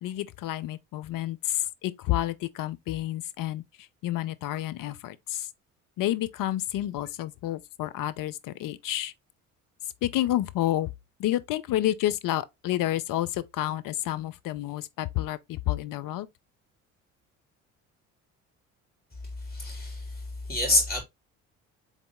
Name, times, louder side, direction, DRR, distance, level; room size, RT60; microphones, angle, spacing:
voice 1, 0.0-3.6 4.0-5.5 6.0-9.1 10.0-10.9 11.2-16.3, left 14 dB, 55° left, 0.7 m, -29 dB
voice 2, 19.4-21.0, left 2 dB, 25° left, 3.4 m, -27 dB
4.0 x 3.7 x 3.5 m
hypercardioid pair, 60°, 38 cm